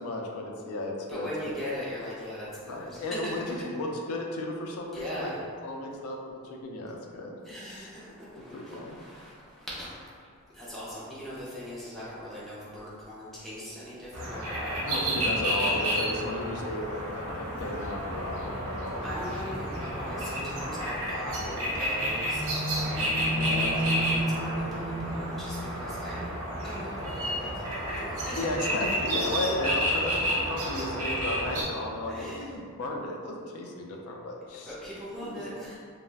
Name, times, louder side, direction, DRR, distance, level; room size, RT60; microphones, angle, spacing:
voice 1, 0.0-1.5 2.7-5.3 5.6-6.2 6.5-7.4 7.7-7.9 8.5-9.0 14.8-19.0 28.4-34.7 35.1-35.5, left 1 dB, 70° left, 1 dB, 0.4 m, -34 dB
voice 2, 1.1-3.3 3.6-3.7 4.9-5.4 7.4-10.1 10.5-15.0 19.0-26.3 26.6-28.5 29.2-29.4 32.1-32.4 34.6-35.8, equal, ahead, -10 dB, 0.4 m, -40 dB
sound 1, 14.1-31.6, equal, 65° right, 0.7 m, -30 dB
2.3 x 2.0 x 3.2 m, 2.2 s
head